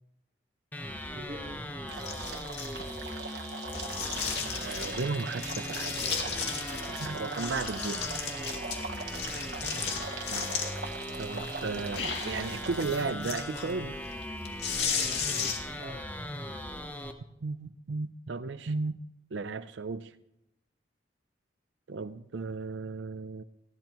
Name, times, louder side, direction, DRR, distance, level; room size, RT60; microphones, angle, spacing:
sound 1, 0.7-17.1, left 1 dB, 10° left, 1.0 m, -39 dB
voice 1, 1.1-1.6 8.4-8.6 14.9-16.0, right 1 dB, 45° right, -2 dB, 1.4 m, -46 dB
sound 2, 1.9-12.8, right 5 dB, 70° right, 1.2 m, -42 dB
sound 3, 2.0-3.1 3.7-5.0 5.4-7.1 7.4-10.9 11.3-15.8, left 6 dB, 70° left, 2.3 m, -35 dB
voice 2, 4.6-6.2 6.9-8.0 10.3-10.5 11.2-14.0 17.4-19.0 19.3-20.1 21.9-23.4, right 4 dB, 85° right, 12 dB, 0.6 m, -35 dB
19.5 x 15.5 x 3.0 m, 0.86 s
head